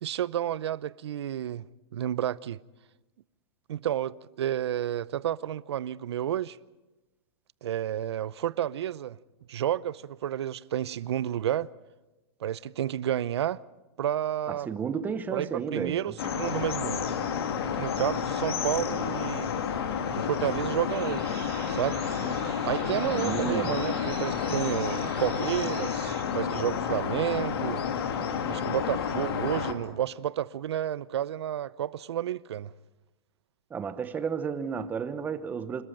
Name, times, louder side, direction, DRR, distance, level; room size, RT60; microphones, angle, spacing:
voice 1, 0.0-1.7 1.9-2.6 3.7-6.6 7.6-9.2 9.5-11.7 12.4-13.6 14.0-14.7 15.3-17.1 17.8-19.5 20.1-21.3 21.7-22.0 22.6-27.8 28.5-32.7, right 11 dB, 75° right, 0.7 m, -31 dB
voice 2, 14.5-16.1 23.1-23.7 33.7-35.8, right 6 dB, 10° right, 0.9 m, -32 dB
sound 1, 16.2-29.7, left 7 dB, 65° left, 2.5 m, -30 dB
sound 2, 20.9-26.2, right 12 dB, 55° right, 2.1 m, -46 dB
26.5 x 13.5 x 8.9 m
hypercardioid pair, 160°, 14 cm